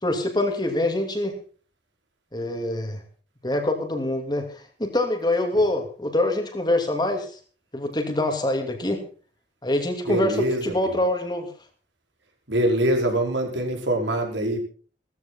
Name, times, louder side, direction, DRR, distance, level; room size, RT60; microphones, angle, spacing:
voice 1, 0.0-1.4 2.3-3.0 3.4-7.3 7.7-9.0 9.6-11.5, left 1 dB, 25° left, 5 dB, 2.7 m, -25 dB
voice 2, 10.0-10.9 12.5-14.6, right 1 dB, 85° right, 2 dB, 5.0 m, -24 dB
17.0 x 14.0 x 4.2 m, 0.40 s
head